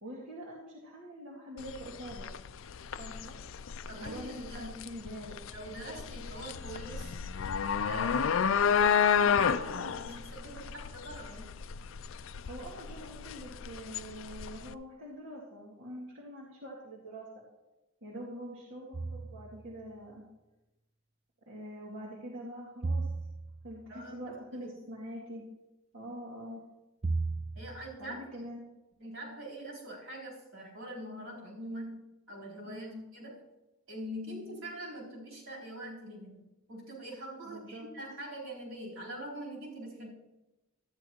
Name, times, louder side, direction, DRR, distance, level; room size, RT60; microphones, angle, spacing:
voice 1, 0.0-2.3 3.0-3.4 3.9-5.4 7.8-8.3 12.4-17.4 18.0-20.2 21.5-23.1 23.6-25.4 25.9-26.6 28.0-28.7 32.7-33.0 37.4-37.9, equal, 60° right, -5 dB, 2.1 m, -44 dB
sound 1, 1.6-14.7, left 7 dB, 65° left, 0.4 m, -31 dB
voice 2, 3.9-4.7 5.5-7.2 7.8-11.5 18.1-18.2 23.9-24.2 24.5-24.7 26.0-26.1 27.5-28.2 29.0-32.9 33.1-33.4 33.9-40.1, right 1 dB, 75° right, -4 dB, 4.2 m, -44 dB
sound 2, 18.9-19.7 22.8-23.9 27.0-28.0, right 3 dB, 30° right, 0.5 m, -35 dB
13.0 x 10.5 x 3.1 m, 1.0 s
head